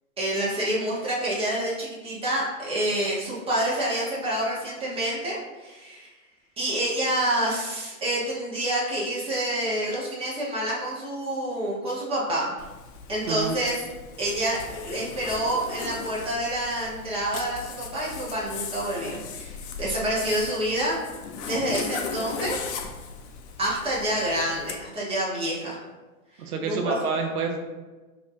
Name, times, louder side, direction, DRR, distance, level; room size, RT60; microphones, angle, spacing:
voice 1, 0.2-6.1 6.6-12.5 13.1-13.8 14.2-14.6 14.8-21.0 21.4-22.6 23.6-25.8 26.7-26.9, right 1 dB, 15° right, -7 dB, 1.3 m, -28 dB
Zipper (clothing), 12.6-24.8, left 5 dB, 50° left, 0.6 m, -37 dB
voice 2, 13.2-13.6 26.4-27.6, right 4 dB, 90° right, 3 dB, 0.8 m, -28 dB
4.9 x 3.0 x 2.8 m, 1.2 s
hypercardioid pair, 125°, 43 cm